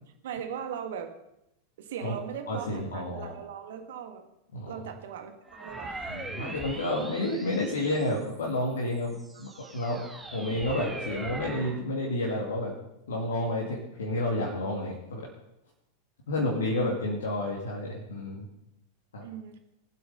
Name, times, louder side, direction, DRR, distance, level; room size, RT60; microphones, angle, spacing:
voice 1, 0.2-1.1 1.8-4.2 4.7-6.2 6.7-6.8 9.3-9.7 19.2-19.6, right 8 dB, 55° right, 6 dB, 1.7 m, -39 dB
voice 2, 2.5-3.4 4.5-4.9 6.1-10.0 10.3-12.7 13.1-15.3 16.3-18.5 19.1-19.2, left 1 dB, 65° left, -2 dB, 2.4 m, -30 dB
sound 1, 5.5-8.4 9.0-11.8, right 2 dB, 10° right, 1.9 m, -41 dB
20.0 x 7.8 x 5.6 m, 0.85 s
figure-of-eight pair, 90°, 0 cm